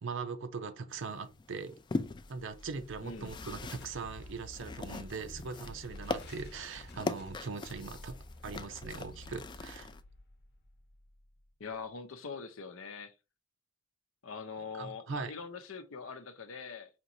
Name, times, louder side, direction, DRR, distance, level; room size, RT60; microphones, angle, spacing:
voice 1, 0.0-1.8 2.3-8.2 8.4-9.9 14.7-15.3, right 4 dB, 65° right, 0.6 m, -40 dB
sound 1, 0.9-10.0, left 3 dB, 20° left, 0.3 m, -42 dB
sound 2, 2.2-11.3, left 1 dB, 55° left, 0.8 m, -50 dB
voice 2, 3.0-3.4 11.6-13.1 14.2-16.9, left 5 dB, 90° left, 0.7 m, -43 dB
5.1 x 2.9 x 2.6 m
head